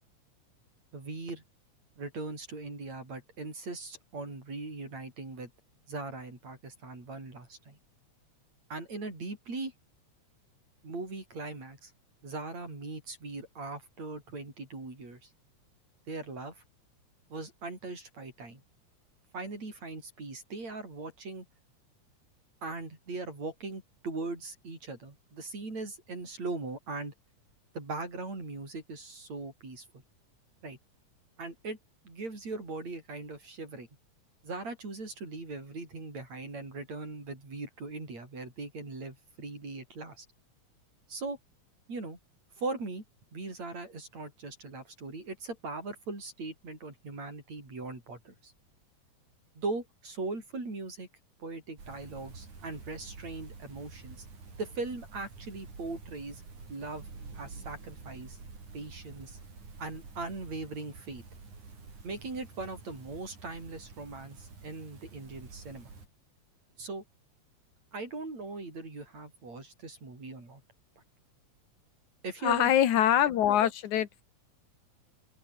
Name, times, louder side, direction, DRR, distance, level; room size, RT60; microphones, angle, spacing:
voice 1, 0.9-1.4 2.0-5.5 5.9-7.8 8.7-9.7 10.8-11.9 12.2-15.3 16.1-16.6 17.3-18.6 19.3-21.5 22.6-27.1 27.7-29.9 30.6-30.8 31.4-31.8 32.0-33.9 34.4-40.3 41.1-41.4 41.9-42.2 42.6-43.0 43.3-48.5 49.5-51.1 51.4-54.3 54.6-56.4 56.7-57.1 57.3-58.4 58.7-59.4 59.8-61.2 62.0-65.9 66.8-67.0 67.9-70.6 72.2-72.7, right 3 dB, 65° right, 9.4 m, -40 dB
sound 1, 51.8-66.1, right 4 dB, 85° right, 7.6 m, -48 dB
voice 2, 72.4-74.2, left 11 dB, 80° left, 2.9 m, -24 dB
open air
omnidirectional pair, 3.4 m